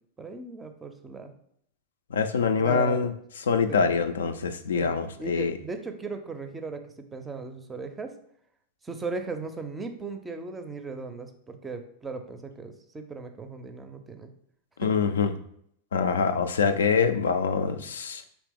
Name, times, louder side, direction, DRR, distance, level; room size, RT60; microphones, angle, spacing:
voice 1, 0.2-1.3 2.6-3.1 3.7-3.9 4.7-8.1 8.8-14.3 14.8-14.9, right 4 dB, 15° right, 7 dB, 0.5 m, -37 dB
voice 2, 2.1-3.1 3.5-5.5 14.8-15.3 15.9-18.2, left 5 dB, 65° left, 9 dB, 0.3 m, -24 dB
4.1 x 3.0 x 3.4 m, 0.69 s
figure-of-eight pair, 90°, 0 cm